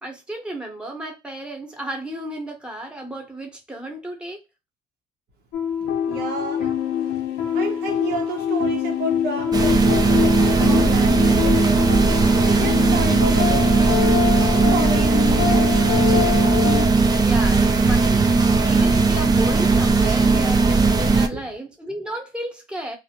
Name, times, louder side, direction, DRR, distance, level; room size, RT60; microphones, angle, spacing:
voice 1, 0.0-4.4 6.5-6.7 10.6-10.8 17.0-23.0, right 1 dB, 5° right, 0.8 m, -33 dB
sound 1, 5.5-16.9, left 9 dB, 90° left, 0.6 m, -24 dB
voice 2, 5.8-11.9 12.3-14.2 14.5-15.7 21.3-21.5, right 3 dB, 85° right, 0.9 m, -31 dB
sound 2, 9.5-21.3, right 4 dB, 25° right, 0.3 m, -18 dB
2.4 x 2.0 x 2.8 m
cardioid pair, 110°, 17 cm